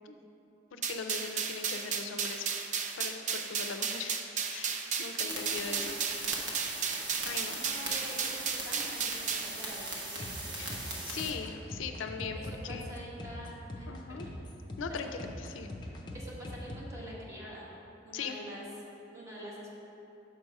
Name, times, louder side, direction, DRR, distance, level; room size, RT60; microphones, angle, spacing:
voice 1, 0.7-2.5 3.0-4.2 4.5-6.0 6.5-6.7 7.2-7.7 10.6-12.9 13.9-14.3 14.8-15.7 18.1-18.4, left 5 dB, 80° left, 6 dB, 0.4 m, -40 dB
sound 1, 0.8-9.5, right 6 dB, 40° right, 0.4 m, -34 dB
voice 2, 5.2-5.9 7.6-11.2 12.3-14.3 14.8-15.1 16.1-17.7 18.0-18.6 19.1-19.7, equal, 15° right, -6 dB, 1.3 m, -46 dB
sound 2, 5.3-11.3, right 2 dB, 70° right, 1.1 m, -39 dB
sound 3, 10.2-16.9, left 1 dB, 25° left, 0.5 m, -43 dB
6.7 x 4.7 x 5.3 m, 3.0 s
head